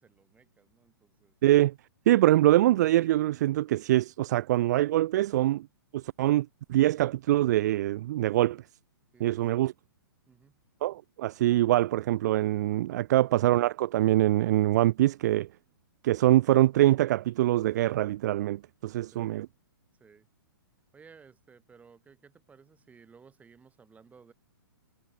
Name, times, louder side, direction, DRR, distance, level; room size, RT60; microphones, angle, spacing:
voice 1, 0.0-1.3 9.1-9.6 10.3-10.6 19.1-19.3 20.0-20.3 20.9-24.3, right 5 dB, 10° right, 7.7 m, -57 dB
voice 2, 1.4-1.7 2.1-5.7 5.9-8.6 9.2-9.7 10.8-15.5 16.0-19.5, right 15 dB, 50° right, 0.4 m, -24 dB
hypercardioid pair, 125°, 12 cm